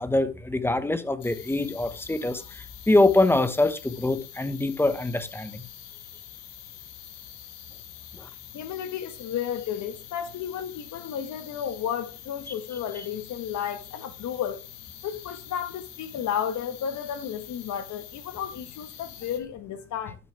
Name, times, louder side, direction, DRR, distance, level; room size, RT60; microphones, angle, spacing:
voice 1, 0.0-5.6 12.9-13.1, left 2 dB, 5° left, 1.1 m, -24 dB
sound 1, 1.2-19.4, left 10 dB, 85° left, 1.8 m, -46 dB
voice 2, 8.5-14.6 15.0-20.2, left 9 dB, 55° left, 1.4 m, -32 dB
12.0 x 6.2 x 3.3 m
supercardioid pair, 105°, 34 cm